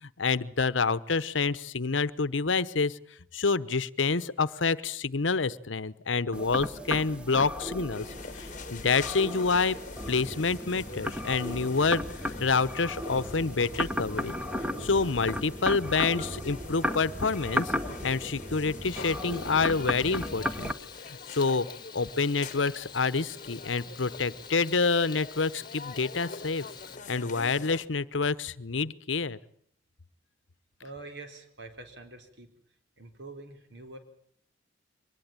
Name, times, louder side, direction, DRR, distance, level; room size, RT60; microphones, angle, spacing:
voice 1, 0.0-3.0 3.3-8.1 8.3-9.8 10.1-14.3 14.8-20.7 21.0-21.7 21.9-26.6 27.1-29.4, left 4 dB, 80° left, 18 dB, 0.9 m, -28 dB
sound 1, 6.3-20.7, left 1 dB, 5° right, 1.2 m, -35 dB
sound 2, 7.9-27.9, left 4 dB, 40° left, 1.2 m, -45 dB
Frying (food), 18.9-27.0, left 6 dB, 25° left, 1.3 m, -48 dB
voice 2, 30.8-32.5 33.0-34.0, right 2 dB, 60° right, 6 dB, 4.2 m, -45 dB
23.5 x 20.0 x 9.0 m, 0.65 s
head